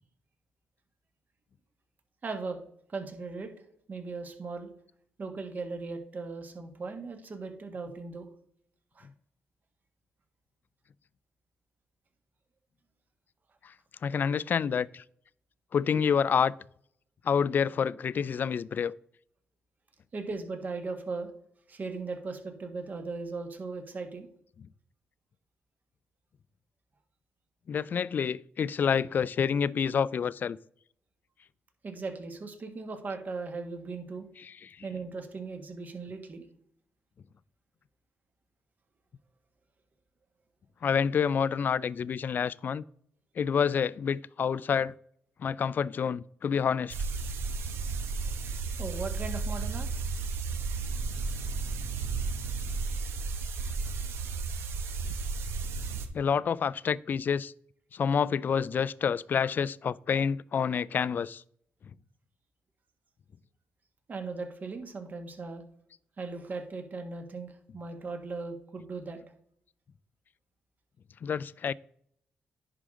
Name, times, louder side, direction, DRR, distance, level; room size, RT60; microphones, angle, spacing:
voice 1, 2.2-2.6 2.9-3.5 3.9-4.7 5.2-8.3 8.9-9.1 20.1-21.3 21.7-24.3 31.8-34.3 34.8-36.5 48.8-49.9 64.1-65.6 66.2-69.2, right 4 dB, 45° right, 1.6 m, -38 dB
voice 2, 14.0-15.0 15.7-16.5 17.3-18.9 27.7-30.6 34.4-34.7 40.8-42.8 43.4-44.9 45.4-46.9 56.1-57.5 57.9-61.4 71.2-71.7, left 7 dB, 50° left, 0.3 m, -28 dB
sound 1, 46.9-56.1, right 4 dB, 80° right, 1.0 m, -33 dB
10.0 x 4.9 x 3.8 m
cardioid pair, 80°, 4 cm